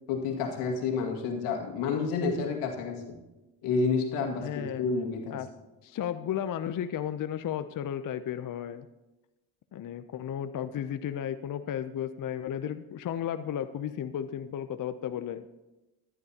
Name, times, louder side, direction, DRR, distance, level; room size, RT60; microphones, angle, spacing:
voice 1, 0.1-3.2 3.6-5.4, left 4 dB, 80° left, 1 dB, 2.2 m, -30 dB
voice 2, 4.4-4.8 5.3-5.5 5.8-8.9 9.7-15.5, left 9 dB, 40° left, 10 dB, 0.6 m, -34 dB
15.0 x 11.0 x 2.9 m, 1.0 s
supercardioid pair, 70°, 50 cm